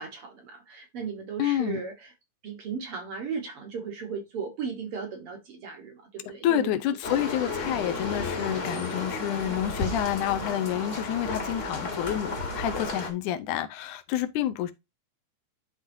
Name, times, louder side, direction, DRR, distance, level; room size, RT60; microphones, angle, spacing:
voice 1, 0.0-2.1 2.4-6.7, right 6 dB, 55° right, 1.9 m, -36 dB
voice 2, 1.4-1.8 6.4-14.7, left 11 dB, 85° left, 2.2 m, -28 dB
sound 1, 7.0-13.1, left 2 dB, 30° left, 1.5 m, -33 dB
11.5 x 3.8 x 2.7 m
omnidirectional pair, 3.5 m